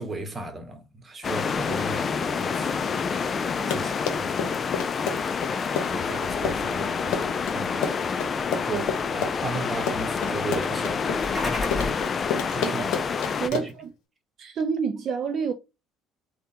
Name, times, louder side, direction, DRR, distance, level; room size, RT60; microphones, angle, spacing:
voice 1, 0.0-2.9 3.7-4.6 5.9-8.1 8.6-8.9 9.1-11.3 12.5-12.9 13.5-13.7, right 2 dB, 25° right, 1.0 m, -36 dB
sound 1, 1.2-13.5, left 5 dB, 40° left, 0.3 m, -28 dB
Run, 3.5-13.9, left 6 dB, 75° left, 0.8 m, -30 dB
sound 2, 11.1-12.1, left 2 dB, 10° left, 1.6 m, -30 dB
voice 2, 12.5-12.9 13.4-13.9 14.4-15.5, right 6 dB, 55° right, 0.4 m, -29 dB
3.5 x 2.2 x 2.7 m
supercardioid pair, 80°, 0 cm